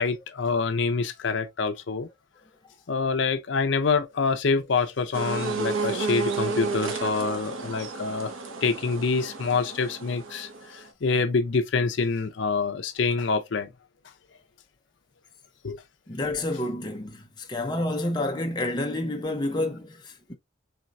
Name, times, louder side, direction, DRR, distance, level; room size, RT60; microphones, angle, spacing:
voice 1, 0.0-2.1 2.9-8.3 8.6-13.7 15.6-15.8, left 4 dB, 70° left, 0.5 m, -26 dB
sound 1, 5.1-10.9, right 4 dB, 85° right, 0.8 m, -32 dB
voice 2, 16.1-20.4, left 1 dB, 20° left, 0.6 m, -29 dB
4.4 x 3.2 x 2.5 m
head